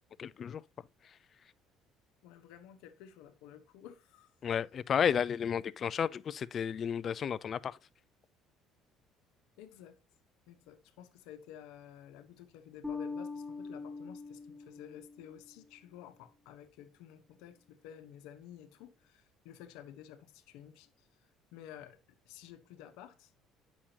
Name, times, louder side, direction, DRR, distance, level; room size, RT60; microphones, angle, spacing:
voice 1, 0.2-0.6 4.4-7.8, left 8 dB, 45° left, 0.4 m, -32 dB
voice 2, 2.2-4.3 9.6-10.0 10.5-21.1 21.5-23.3, left 10 dB, 85° left, 0.9 m, -52 dB
Bass guitar, 12.8-15.5, left 4 dB, 10° right, 1.6 m, -42 dB
8.5 x 6.2 x 2.8 m
supercardioid pair, 90°, 0 cm